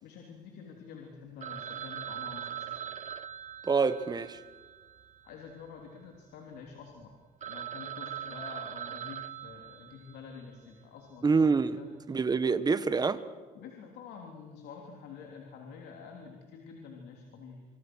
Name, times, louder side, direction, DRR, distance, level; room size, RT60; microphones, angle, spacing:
voice 1, 0.0-3.0 5.2-7.1 7.5-11.9 13.6-17.7, left 5 dB, 80° left, 3.4 m, -48 dB
Telephone, 1.4-5.8 6.0-6.1 6.7-6.8 7.1-7.2 7.4-10.4, right 10 dB, 45° right, 1.1 m, -41 dB
voice 2, 3.6-4.4 11.2-11.8 12.1-13.2, right 4 dB, 25° right, 1.2 m, -26 dB
26.0 x 24.5 x 6.3 m
cardioid pair, 110°, 17 cm